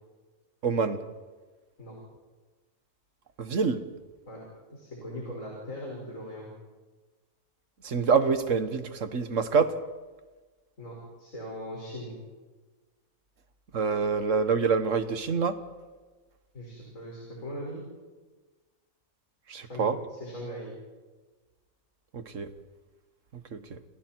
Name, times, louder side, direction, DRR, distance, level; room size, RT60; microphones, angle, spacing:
voice 1, 0.6-1.1 3.4-3.9 7.8-9.8 13.7-15.6 19.5-20.0 22.1-22.5 23.3-23.8, right 5 dB, 60° right, 10 dB, 1.7 m, -26 dB
voice 2, 4.7-6.5 10.8-12.1 16.5-17.8 19.6-20.7, equal, 65° left, -3 dB, 6.4 m, -40 dB
29.5 x 29.0 x 4.6 m, 1.3 s
omnidirectional pair, 1.5 m